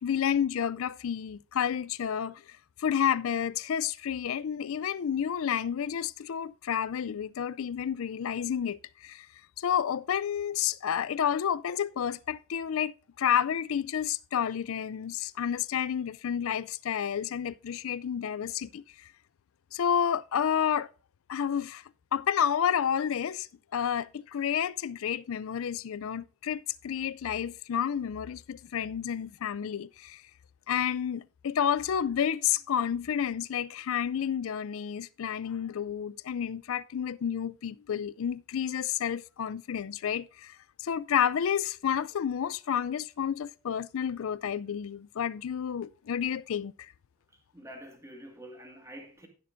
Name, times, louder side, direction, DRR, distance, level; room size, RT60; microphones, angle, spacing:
voice 1, 0.0-9.3 9.6-19.1 19.7-20.9 21.3-21.8 22.1-30.2 30.7-46.9, left 8 dB, 65° left, 0.4 m, -30 dB
voice 2, 47.3-49.3, equal, 15° right, 1.9 m, -47 dB
16.0 x 6.7 x 2.6 m
head